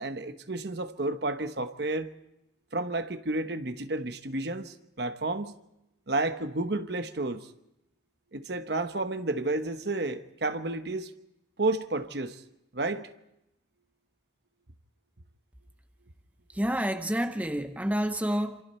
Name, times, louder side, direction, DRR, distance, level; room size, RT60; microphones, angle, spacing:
voice 1, 0.0-2.1 2.7-5.5 6.1-7.5 8.3-11.1 11.6-12.4 12.7-13.1, right 2 dB, 60° right, 1.0 m, -31 dB
voice 2, 16.5-18.6, equal, 10° right, 0.8 m, -29 dB
27.5 x 26.5 x 4.4 m
head